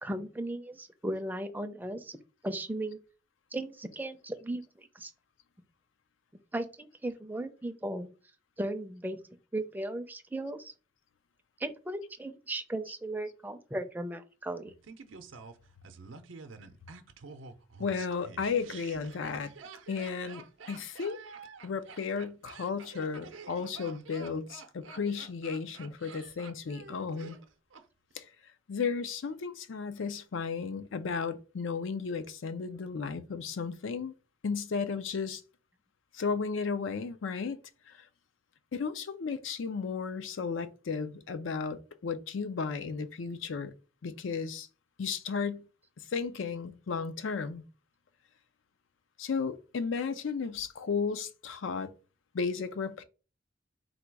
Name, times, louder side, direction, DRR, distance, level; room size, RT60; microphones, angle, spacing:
voice 1, 0.0-2.1 2.4-3.0 3.5-5.1 6.5-8.1 8.6-9.2 9.5-10.7 11.6-14.7, right 1 dB, 10° right, 0.4 m, -36 dB
Laughter, 14.8-27.8 28.1-28.2, right 5 dB, 85° right, 0.5 m, -49 dB
voice 2, 17.8-19.5 19.9-21.2 21.6-27.4 28.1-28.3 28.7-34.1 34.4-35.4 36.1-37.6 37.9-38.1 38.7-43.7 44.0-44.7 45.0-45.6 46.0-47.6 49.2-51.9 52.3-53.0, left 5 dB, 85° left, 0.5 m, -34 dB
3.8 x 2.3 x 4.5 m
head